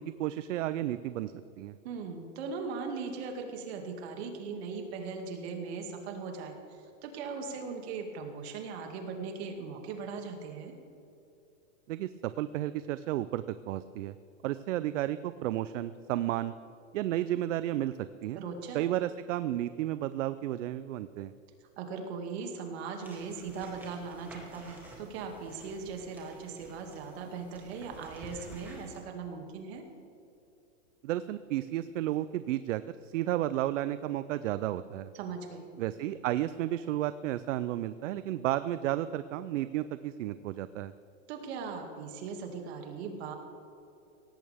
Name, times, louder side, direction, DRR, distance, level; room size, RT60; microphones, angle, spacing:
voice 1, 0.0-1.7 11.9-14.1 14.4-16.5 16.9-18.4 18.7-21.3 31.0-35.1 35.8-40.9, right 13 dB, 70° right, 14 dB, 0.6 m, -32 dB
voice 2, 1.8-10.7 18.3-18.8 21.8-29.8 35.1-35.7 41.3-43.3, right 5 dB, 50° right, 4 dB, 2.3 m, -39 dB
sound 1, 23.0-29.0, right 1 dB, 5° right, 2.5 m, -51 dB
17.5 x 15.5 x 3.5 m, 2.7 s
supercardioid pair, 155°, 40 cm